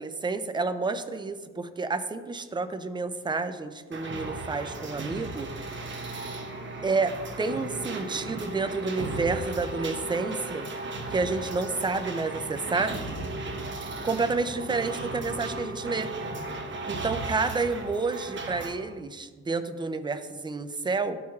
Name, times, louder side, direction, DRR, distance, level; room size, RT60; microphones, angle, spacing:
voice 1, 0.0-5.5 6.8-10.7 11.1-13.0 14.0-16.1 16.9-21.2, right 3 dB, 15° right, 10 dB, 0.4 m, -30 dB
sound 1, 3.9-18.7, right 2 dB, 40° right, 1.0 m, -35 dB
12.0 x 4.6 x 2.3 m, 1.5 s
cardioid pair, 90°, 30 cm